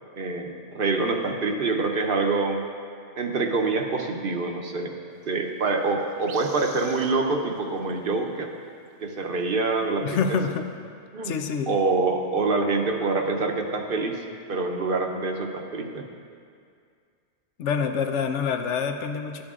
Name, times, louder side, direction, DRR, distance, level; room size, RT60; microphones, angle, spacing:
voice 1, 0.2-2.6 3.2-4.9 5.2-8.5 9.0-10.4 11.1-11.4 11.7-14.2 14.5-16.1, right 3 dB, 55° right, 4 dB, 0.9 m, -26 dB
sound 1, 5.8-5.9 6.1-7.7 7.9-8.1 8.5-8.6 8.9-9.0 10.1-10.2, right 6 dB, 85° right, 1.0 m, -44 dB
voice 2, 10.0-10.7 11.2-11.7 17.6-19.4, left 6 dB, 90° left, 6 dB, 1.0 m, -26 dB
11.0 x 8.8 x 3.6 m, 2.2 s
omnidirectional pair, 1.2 m